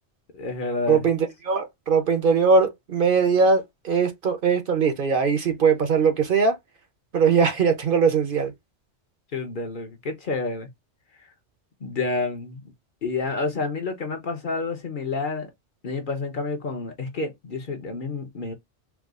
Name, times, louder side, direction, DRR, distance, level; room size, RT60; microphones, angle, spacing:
voice 1, 0.3-1.0 9.3-10.7 11.8-12.6 13.0-15.5 15.8-18.5, left 3 dB, 50° left, 0.9 m, -29 dB
voice 2, 0.9-6.6 7.1-8.5, right 5 dB, 55° right, 0.8 m, -21 dB
4.6 x 2.3 x 2.4 m
omnidirectional pair, 1.2 m